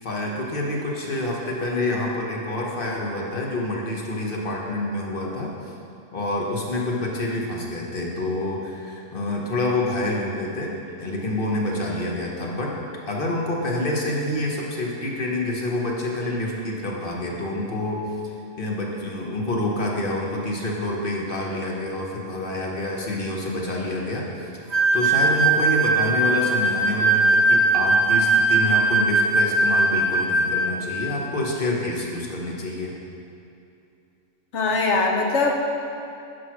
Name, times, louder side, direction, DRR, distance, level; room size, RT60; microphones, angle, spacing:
voice 1, 0.0-5.5 6.1-12.7 13.1-18.1 18.6-24.5 24.9-32.9, left 1 dB, 40° left, -2 dB, 1.4 m, -27 dB
sound 1, 24.7-30.8, right 2 dB, 40° right, 0.7 m, -20 dB
voice 2, 34.5-35.5, left 3 dB, 60° left, 1 dB, 1.2 m, -21 dB
10.5 x 4.8 x 6.0 m, 2.7 s
omnidirectional pair, 1.4 m